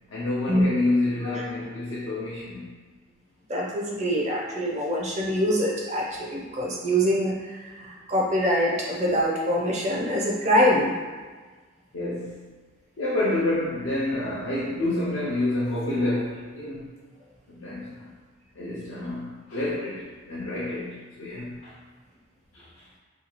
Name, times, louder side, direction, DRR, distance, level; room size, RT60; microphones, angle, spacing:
voice 1, 0.1-2.7 11.9-12.4 13.0-16.9 17.5-18.1 18.5-21.8 22.5-22.9, left 2 dB, 70° left, -7 dB, 0.5 m, -28 dB
voice 2, 3.5-10.9, equal, 30° right, -4 dB, 0.5 m, -24 dB
2.7 x 2.3 x 2.9 m, 1.4 s
head